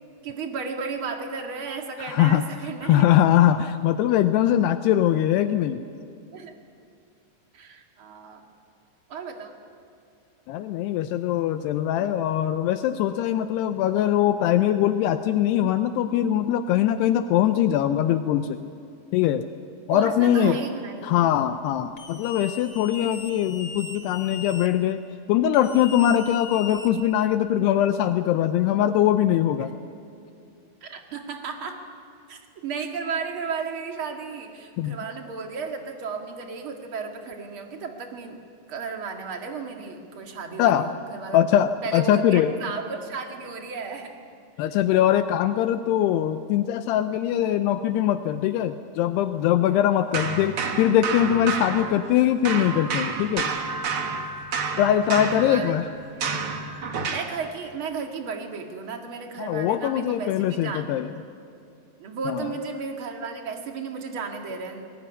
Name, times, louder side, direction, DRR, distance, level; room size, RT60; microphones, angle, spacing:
voice 1, 0.2-3.1 6.3-6.6 7.5-8.4 9.1-9.5 19.9-21.3 29.6-29.7 30.8-31.8 32.3-38.4 38.7-41.4 41.8-44.1 54.7-55.7 57.1-60.9 62.0-64.9, right 5 dB, 45° right, 3 dB, 2.0 m, -34 dB
voice 2, 2.0-2.4 2.8-5.8 10.5-18.7 19.1-19.4 19.9-20.6 21.0-25.0 25.3-29.7 34.8-35.0 40.6-40.9 41.3-42.6 44.6-53.5 54.8-55.9 59.4-61.1 62.3-62.6, left 11 dB, 80° left, 9 dB, 2.7 m, -22 dB
sound 1, 22.0-24.7 25.5-27.3, left 5 dB, 55° left, 1.3 m, -39 dB
sound 2, 50.1-52.2 52.4-57.4, right 5 dB, 70° right, 1.2 m, -30 dB
22.5 x 20.0 x 9.9 m, 2.5 s
omnidirectional pair, 4.9 m